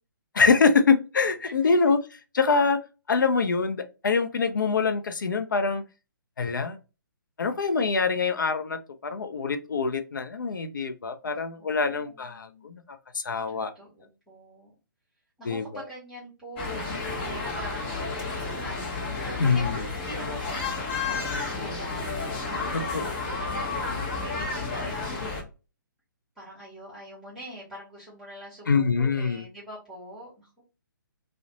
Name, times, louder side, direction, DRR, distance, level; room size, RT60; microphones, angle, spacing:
voice 1, 0.3-2.0 2.4-2.8 3.1-5.8 6.4-6.8 7.4-12.8 13.1-13.7 15.4-15.7 19.4-19.8 22.7-23.1 28.7-29.5, left 4 dB, 65° left, 9 dB, 0.5 m, -24 dB
voice 2, 11.2-12.7 13.5-14.7 15.4-16.9 17.2-18.0 18.6-19.6 20.0-23.6 24.1-25.5 26.4-30.6, right 1 dB, 5° right, -6 dB, 0.9 m, -44 dB
sound 1, 16.6-25.4, left 3 dB, 30° left, 0.7 m, -31 dB
2.4 x 2.1 x 2.8 m, 0.30 s
figure-of-eight pair, 135°, 11 cm